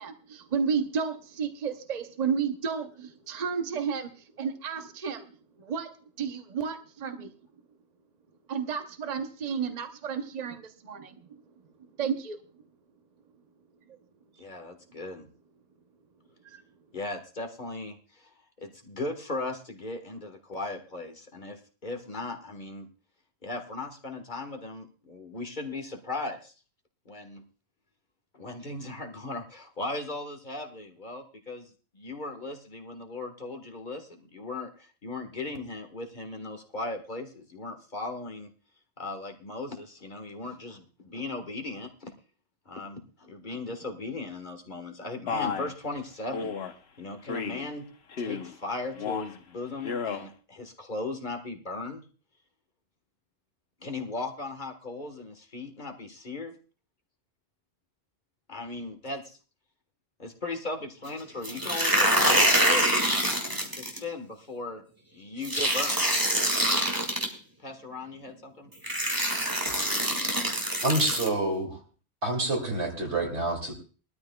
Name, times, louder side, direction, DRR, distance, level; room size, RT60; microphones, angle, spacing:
voice 1, 0.0-5.3 5.6-7.3 8.5-11.4 12.0-12.4 16.4-16.6, right 6 dB, 40° right, 6 dB, 0.9 m, -32 dB
voice 2, 14.4-15.3 16.9-18.3 18.6-22.9 23.4-26.5 27.0-27.4 28.3-38.5 39.0-42.1 42.6-46.5 47.0-47.9 48.2-52.0 53.8-56.5 58.5-59.4 60.2-63.1 63.7-64.8 65.1-65.9 67.6-68.7, left 2 dB, 45° left, 4 dB, 1.6 m, -37 dB
Male speech man speaking, 45.3-45.7 46.3-46.7 47.3-47.7 48.1-48.5 48.9-49.4 49.8-50.3, left 6 dB, 75° left, 1.1 m, -32 dB
sound 1, 61.4-64.0 65.4-67.3 68.3-68.4 68.8-71.3, right 1 dB, 20° right, 2.0 m, -25 dB
voice 3, 70.8-71.8 72.2-73.7, right 2 dB, 90° right, 2 dB, 2.9 m, -28 dB
21.0 x 13.0 x 2.3 m, 0.37 s
omnidirectional pair, 1.1 m